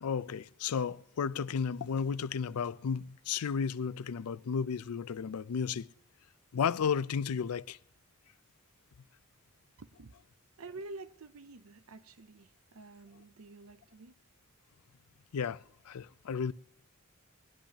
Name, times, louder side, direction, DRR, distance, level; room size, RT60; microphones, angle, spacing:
voice 1, 0.0-5.9 6.5-7.8 15.3-16.5, left 6 dB, 80° left, 0.4 m, -33 dB
voice 2, 9.8-10.2 10.6-14.2, right 3 dB, 70° right, 0.6 m, -49 dB
20.0 x 10.0 x 2.9 m
head